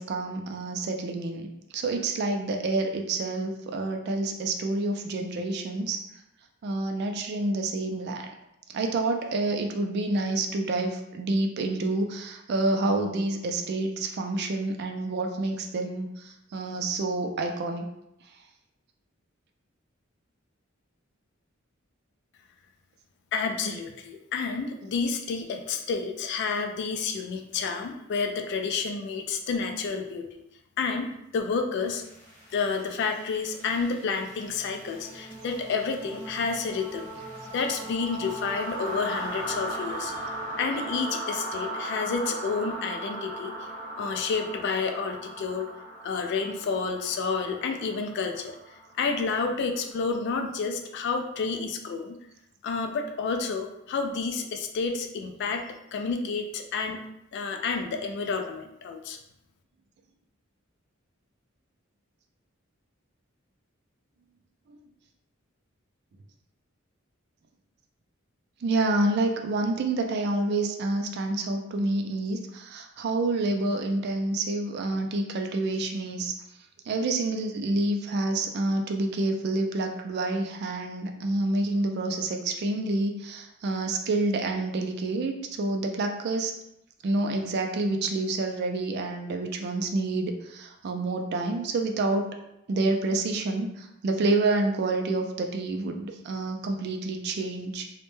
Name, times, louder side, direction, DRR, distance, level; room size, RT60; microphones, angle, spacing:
voice 1, 0.0-1.5 1.7-6.0 6.6-8.3 8.7-17.8 64.7-64.8 68.6-76.3 76.9-86.5 87.0-92.3 92.7-97.8, right 2 dB, 55° right, 4 dB, 0.3 m, -28 dB
voice 2, 23.3-30.2 30.8-32.0 32.5-37.1 37.5-40.1 40.6-43.5 44.0-45.7 46.0-48.6 49.0-52.2 52.6-55.6 55.9-57.0 57.3-59.2, left 4 dB, 60° left, 5 dB, 0.3 m, -30 dB
sound 1, 31.9-49.7, right 1 dB, 40° left, 0.9 m, -38 dB
2.1 x 2.1 x 3.0 m, 0.83 s
head